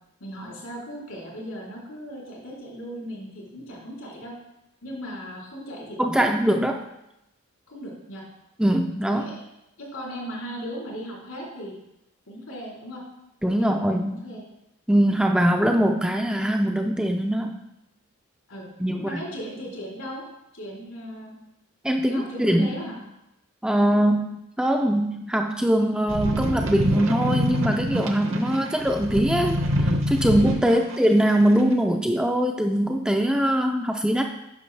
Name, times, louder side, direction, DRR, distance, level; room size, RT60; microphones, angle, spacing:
voice 1, 0.2-4.3 4.8-6.3 7.7-8.2 9.1-9.4 9.8-11.7 12.3-13.0 13.6-14.4 18.5-18.7 18.9-20.2 20.5-21.4 22.1-23.0 30.6-30.9, equal, 80° left, -4 dB, 3.1 m, -37 dB
voice 2, 6.0-6.8 8.6-9.3 13.4-14.2 14.9-17.6 18.8-19.2 21.8-22.7 23.6-34.2, equal, 5° right, 3 dB, 0.3 m, -22 dB
sound 1, 26.1-31.0 31.6-31.7, equal, 60° right, 0.9 m, -25 dB
9.8 x 6.0 x 3.3 m, 0.89 s
head